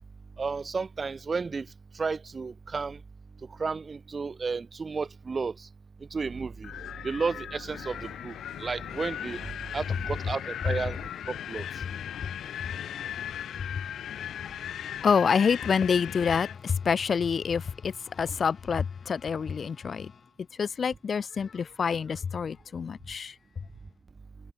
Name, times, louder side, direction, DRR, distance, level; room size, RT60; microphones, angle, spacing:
voice 1, 0.4-1.7 1.9-3.0 3.6-5.7 6.1-6.7 7.0-11.0 11.3-11.6, right 4 dB, 35° right, 2.4 m, -32 dB
Wind, 6.6-16.6, left 10 dB, 70° left, 5.8 m, -38 dB
voice 2, 11.9-20.1 20.6-23.3, left 6 dB, 45° left, 1.8 m, -28 dB
cardioid pair, 90°, 0 cm